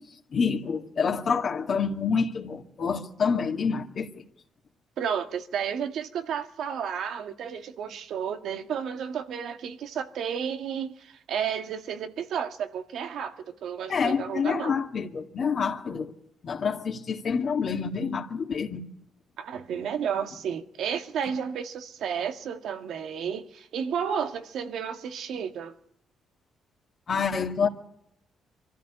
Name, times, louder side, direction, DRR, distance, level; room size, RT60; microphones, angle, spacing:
voice 1, 0.3-4.1 13.9-16.1 16.4-18.9 27.1-27.7, left 6 dB, 50° left, 2.0 m, -27 dB
voice 2, 5.0-14.8 19.4-25.8, right 7 dB, 75° right, 1.7 m, -32 dB
24.5 x 14.0 x 9.9 m
cardioid pair, 90°, 0 cm